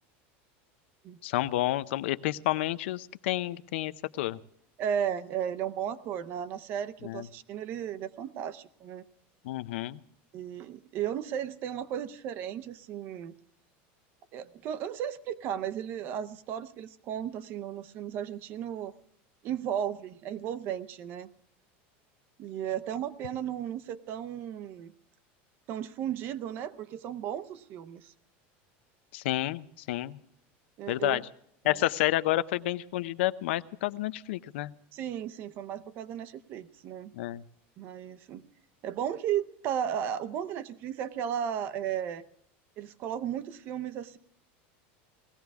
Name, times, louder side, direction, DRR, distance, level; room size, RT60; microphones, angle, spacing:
voice 1, 1.2-4.4 7.0-7.3 9.4-10.0 29.1-30.2 30.9-31.2 31.6-34.7 37.1-37.4, left 15 dB, 75° left, 14 dB, 0.6 m, -30 dB
voice 2, 4.8-9.0 10.3-13.3 14.3-18.9 19.4-21.3 22.4-24.9 25.7-28.1 30.8-31.2 31.6-31.8 34.9-37.1 37.8-38.5 38.8-42.2 42.8-44.2, right 9 dB, 35° right, 15 dB, 0.6 m, -35 dB
19.0 x 15.5 x 3.5 m, 0.70 s
supercardioid pair, 175°, 6 cm